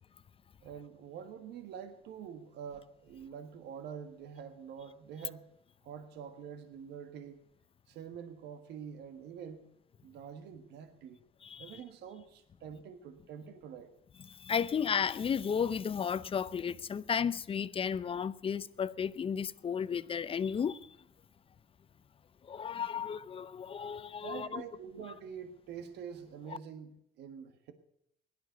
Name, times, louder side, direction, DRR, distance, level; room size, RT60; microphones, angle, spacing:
voice 1, 0.6-5.4 5.8-7.4 7.9-9.7 10.0-11.2 11.6-13.9 24.2-27.7, right 7 dB, 80° right, 1.5 m, -46 dB
voice 2, 11.4-11.8 14.2-20.9 22.4-24.6, left 7 dB, 35° left, 0.7 m, -34 dB
17.0 x 11.5 x 6.7 m
cardioid pair, 110°, 17 cm